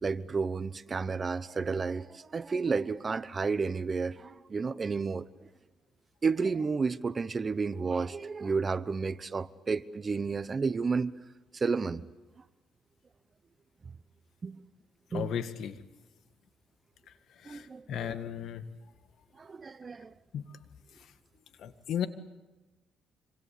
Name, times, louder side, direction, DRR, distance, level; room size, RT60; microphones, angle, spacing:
voice 1, 0.0-5.3 6.2-11.1 11.5-12.0 14.4-14.6 15.1-15.4 17.5-18.1 19.4-20.1, right 4 dB, 35° right, 0.9 m, -31 dB
voice 2, 15.1-15.8 17.4-18.6 20.3-20.4 21.6-22.1, left 9 dB, 75° left, 1.9 m, -35 dB
26.0 x 26.0 x 8.6 m
cardioid pair, 90°, 0 cm